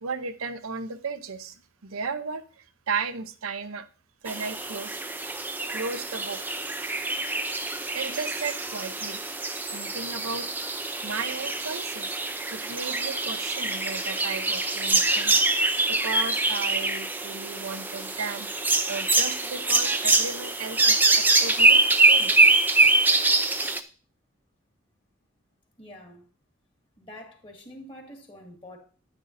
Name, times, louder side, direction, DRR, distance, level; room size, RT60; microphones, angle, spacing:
voice 1, 0.0-3.9 4.2-4.9 5.7-6.4 7.9-9.2 9.6-10.5 11.0-12.2 12.5-18.5 18.9-22.3, right 5 dB, 90° right, 0.7 m, -35 dB
sound 1, 4.3-23.8, right 2 dB, 10° right, 0.5 m, -24 dB
voice 2, 25.8-26.2 27.0-28.8, left 1 dB, 25° left, 2.0 m, -45 dB
10.5 x 10.0 x 2.6 m
head